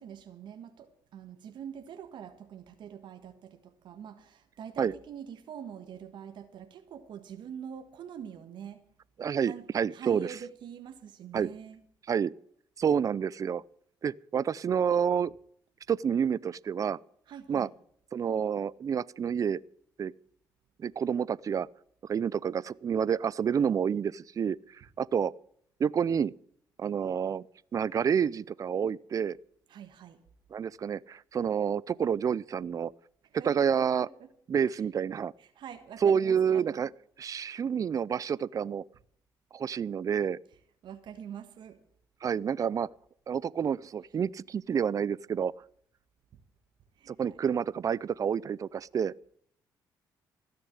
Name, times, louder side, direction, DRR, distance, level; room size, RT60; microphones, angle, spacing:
voice 1, 0.0-8.8 9.4-9.7 9.9-11.8 17.3-17.7 29.7-30.2 33.4-34.3 35.4-36.9 40.8-41.8 46.3-46.4 47.0-47.4, right 8 dB, 70° right, 1.5 m, -45 dB
voice 2, 9.2-10.3 11.3-11.5 12.1-12.3 12.8-13.6 14.0-15.3 15.9-17.0 17.5-17.7 18.1-19.6 20.0-20.1 20.8-21.7 22.1-25.3 25.8-26.3 26.8-27.4 27.7-29.4 30.5-32.9 33.4-34.1 34.5-35.3 36.0-36.9 37.2-38.8 39.5-40.4 42.2-42.9 43.3-45.5 47.1-49.1, right 7 dB, 45° right, 0.5 m, -29 dB
16.0 x 6.7 x 9.5 m
cardioid pair, 85°, 8 cm